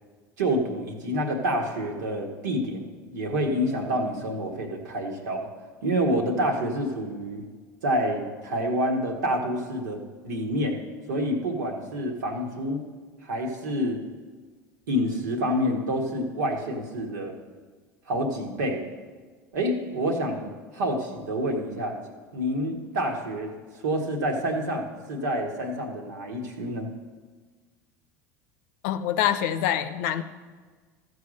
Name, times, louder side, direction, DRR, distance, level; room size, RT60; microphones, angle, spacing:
voice 1, 0.4-2.9 3.1-5.5 5.8-7.4 7.8-10.8 11.1-12.8 13.2-14.0 14.9-17.3 18.1-18.8 19.5-20.5 20.7-21.9 22.3-23.5 23.8-26.9, equal, 80° right, 1 dB, 1.7 m, -28 dB
voice 2, 28.8-30.2, left 10 dB, 65° left, 11 dB, 0.7 m, -25 dB
14.0 x 4.8 x 6.4 m, 1.5 s
hypercardioid pair, 80°, 10 cm